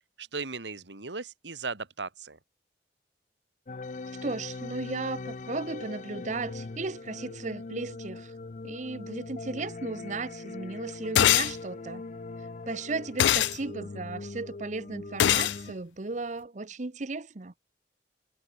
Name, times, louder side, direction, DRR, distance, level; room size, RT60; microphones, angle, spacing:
voice 1, 0.2-2.4, right 4 dB, 85° right, 2.2 m, -37 dB
sound 1, 3.7-15.7, left 3 dB, 45° left, 0.6 m, -41 dB
voice 2, 4.2-8.3 8.6-12.0 12.7-17.5, right 3 dB, 45° right, 0.8 m, -35 dB
sound 2, 11.2-11.5 13.2-13.6 15.2-15.6, left 12 dB, 90° left, 0.3 m, -22 dB
head